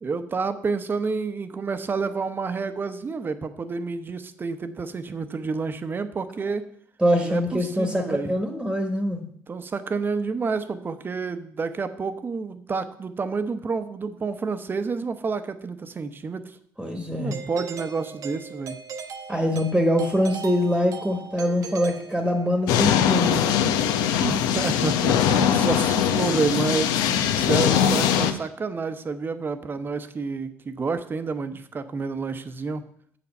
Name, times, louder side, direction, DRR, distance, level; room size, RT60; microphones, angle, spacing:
voice 1, 0.0-6.6 7.2-8.3 9.5-16.6 17.2-18.8 24.2-27.0 27.4-32.8, right 4 dB, 30° right, 10 dB, 0.9 m, -29 dB
voice 2, 7.0-9.2 16.8-17.4 19.3-23.7, equal, 5° right, 4 dB, 1.4 m, -24 dB
Doorbell, 17.3-22.7, right 5 dB, 55° right, 1.1 m, -39 dB
sound 1, 22.7-28.3, left 9 dB, 75° left, 0.8 m, -21 dB
7.0 x 7.0 x 5.4 m, 0.63 s
supercardioid pair, 75°, 7 cm